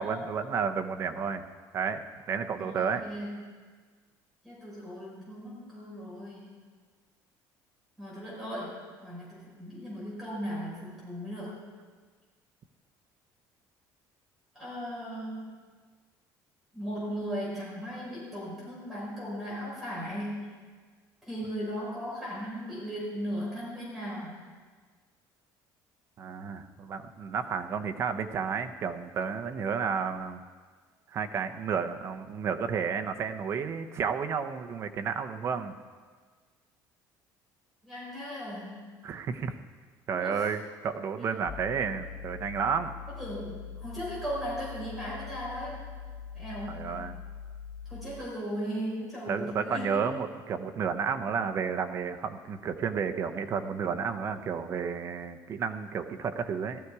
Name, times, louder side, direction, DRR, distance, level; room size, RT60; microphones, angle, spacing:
voice 1, 0.0-1.4 1.7-2.0 2.3-3.1 26.2-30.4 31.1-35.7 39.0-39.6 40.1-42.9 46.7-47.2 49.3-56.8, right 6 dB, 35° right, 8 dB, 0.8 m, -31 dB
voice 2, 2.6-3.3 4.4-6.5 8.0-11.6 14.5-15.6 16.7-20.5 21.2-24.4 37.8-38.8 40.1-40.6 41.2-41.3 43.1-45.8 46.3-46.9 47.9-50.1, equal, ahead, -8 dB, 5.2 m, -37 dB
sound 1, 41.5-48.3, left 7 dB, 40° left, 5.2 m, -43 dB
16.5 x 13.0 x 4.8 m, 1.5 s
cardioid pair, 175°, 8 cm